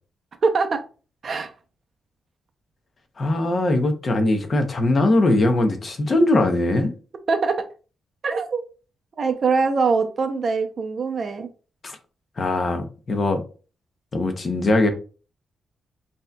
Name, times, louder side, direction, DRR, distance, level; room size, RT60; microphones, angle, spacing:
voice 1, 0.4-0.8 1.2-1.5 7.3-7.7 8.2-8.6 9.2-11.5, right 4 dB, 40° right, 0.5 m, -22 dB
voice 2, 3.2-6.9 11.8-12.0 12.4-13.4 14.1-14.9, left 2 dB, 30° left, 0.7 m, -21 dB
6.0 x 2.7 x 2.2 m
wide cardioid pair, 160°, 0 cm